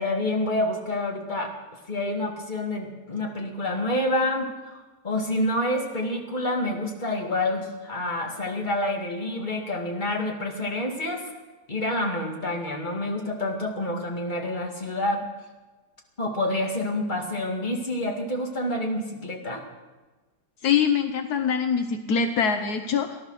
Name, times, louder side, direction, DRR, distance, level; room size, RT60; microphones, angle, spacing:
voice 1, 0.0-1.5 1.9-11.2 11.7-15.2 16.2-19.6, left 1 dB, 30° left, 1 dB, 2.3 m, -28 dB
voice 2, 20.6-23.3, left 6 dB, 75° left, 6 dB, 1.4 m, -24 dB
18.0 x 11.5 x 6.4 m, 1.2 s
omnidirectional pair, 1.7 m